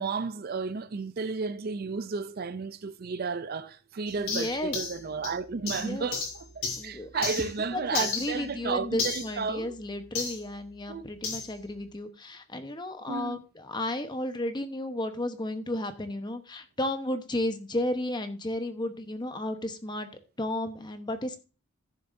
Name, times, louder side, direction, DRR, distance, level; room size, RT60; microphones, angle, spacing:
voice 1, 0.0-9.8 10.9-11.1 13.1-13.4, right 4 dB, 45° right, 0.5 m, -33 dB
sound 1, 4.1-7.6 7.9-10.4 11.2-11.5, left 4 dB, 90° left, 3.8 m, -35 dB
voice 2, 4.2-4.7 5.7-6.1 6.8-20.1 20.4-21.4, left 1 dB, 20° left, 1.0 m, -33 dB
15.0 x 6.8 x 2.7 m
head